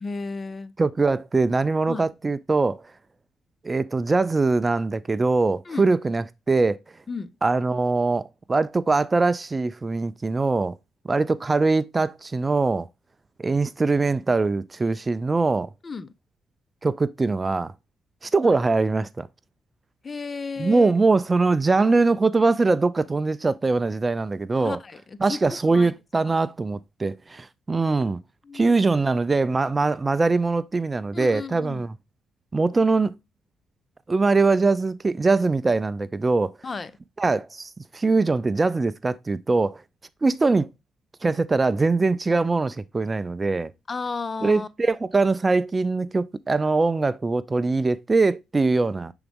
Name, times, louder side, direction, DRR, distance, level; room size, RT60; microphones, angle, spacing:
voice 1, 0.0-0.7 1.9-2.1 5.7-5.9 7.1-7.3 15.8-16.1 18.4-18.6 20.0-20.9 24.5-25.9 26.2-26.4 28.4-28.7 31.1-31.8 36.6-36.9 43.9-44.7, left 4 dB, 35° left, 0.5 m, -33 dB
voice 2, 0.8-2.8 3.6-6.8 7.4-10.8 11.0-12.9 13.4-15.7 16.8-17.7 18.2-19.3 20.6-24.8 25.2-28.2 28.5-31.9 32.5-33.2 34.1-36.5 37.2-39.8 40.2-40.7 41.2-43.7 44.4-49.1, right 3 dB, 25° right, 0.3 m, -22 dB
7.0 x 3.9 x 3.4 m
cardioid pair, 90°, 0 cm